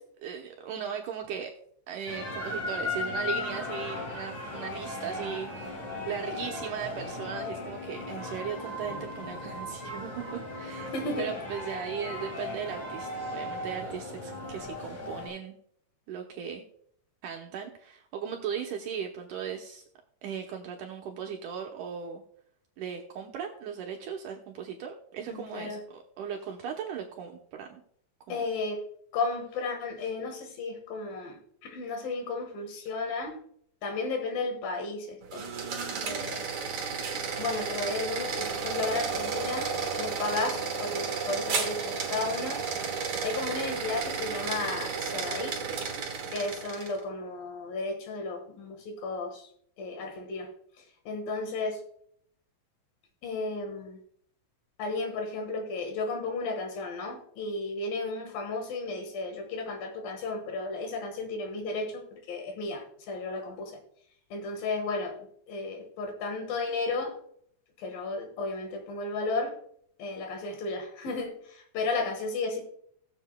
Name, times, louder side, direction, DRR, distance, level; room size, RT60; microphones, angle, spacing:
voice 1, 0.2-1.5 1.9-5.8 6.1-10.9 11.2-15.5 16.1-16.6 17.2-19.8 20.2-22.2 22.8-27.8 28.3-28.5, right 7 dB, 75° right, 2 dB, 2.0 m, -37 dB
sound 1, 2.1-15.3, left 2 dB, 30° left, 4.3 m, -37 dB
voice 2, 10.8-11.4 25.3-25.8 28.3-28.8 29.1-33.4 33.8-35.5 36.0-36.5 37.4-39.7 40.0-42.6 43.2-45.6 46.3-49.5 49.8-50.5 50.8-51.8 53.2-54.0 54.8-63.8 64.3-65.2 65.5-67.1 67.8-69.6 70.0-72.6, left 3 dB, 70° left, 4 dB, 3.1 m, -33 dB
sound 2, 35.2-47.0, right 5 dB, 50° right, 1.5 m, -33 dB
19.0 x 7.3 x 2.2 m, 0.65 s
omnidirectional pair, 4.3 m